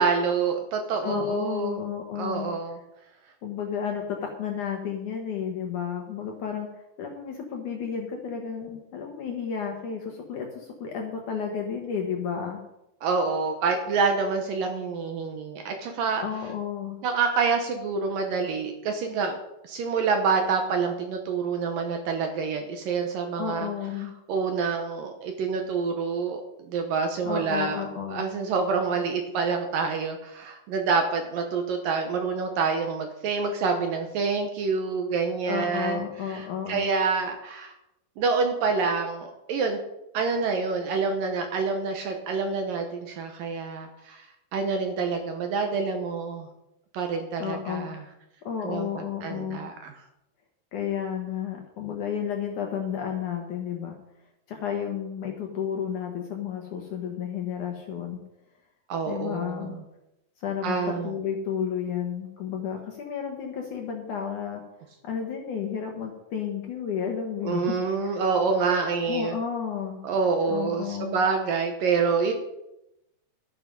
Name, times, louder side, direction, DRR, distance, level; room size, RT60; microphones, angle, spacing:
voice 1, 0.0-1.8 2.1-2.8 13.0-16.2 17.0-19.4 19.6-23.7 24.3-27.8 28.1-37.7 38.2-39.8 40.1-44.3 44.5-46.5 46.9-48.0 48.6-49.9 58.9-59.8 60.6-61.1 67.4-69.4 70.0-72.3, right 5 dB, 70° right, 4 dB, 2.4 m, -27 dB
voice 2, 1.0-2.5 3.4-6.7 7.0-12.6 16.2-17.0 23.4-24.1 27.2-28.3 35.5-36.9 47.4-47.9 48.4-49.6 50.7-54.0 54.5-58.2 59.1-59.8 60.4-64.6 65.0-67.7 68.0-68.2 69.1-70.0 70.5-71.2, left 8 dB, 65° left, 2 dB, 2.1 m, -32 dB
12.0 x 10.0 x 5.4 m, 0.88 s
omnidirectional pair, 4.9 m